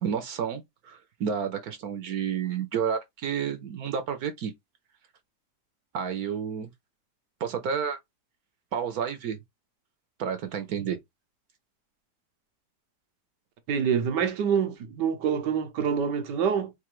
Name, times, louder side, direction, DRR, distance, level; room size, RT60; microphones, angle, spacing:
voice 1, 0.0-4.5 5.9-6.7 7.4-8.0 8.7-9.4 10.2-11.0, right 7 dB, 65° right, 1.2 m, -30 dB
voice 2, 13.7-16.7, right 7 dB, 85° right, 1.5 m, -26 dB
4.8 x 2.7 x 3.0 m
omnidirectional pair, 1.8 m